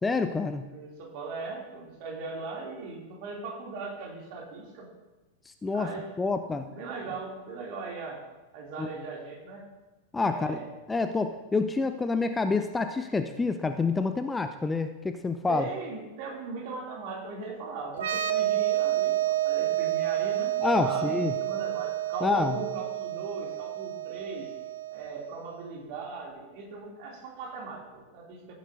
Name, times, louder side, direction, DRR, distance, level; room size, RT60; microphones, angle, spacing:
voice 1, 0.0-0.6 5.6-5.9 6.2-6.7 8.8-8.9 10.1-10.6 10.9-15.6 20.6-21.3 22.2-22.6, left 3 dB, 10° left, 8 dB, 0.5 m, -27 dB
voice 2, 0.6-4.9 5.7-6.1 6.7-8.2 8.5-9.7 10.2-10.7 15.5-24.5 24.9-28.5, right 4 dB, 45° right, -1 dB, 2.8 m, -39 dB
sound 1, 17.9-25.4, right 14 dB, 60° right, 0.5 m, -29 dB
15.0 x 9.1 x 2.7 m, 1.1 s
figure-of-eight pair, 90°, 0 cm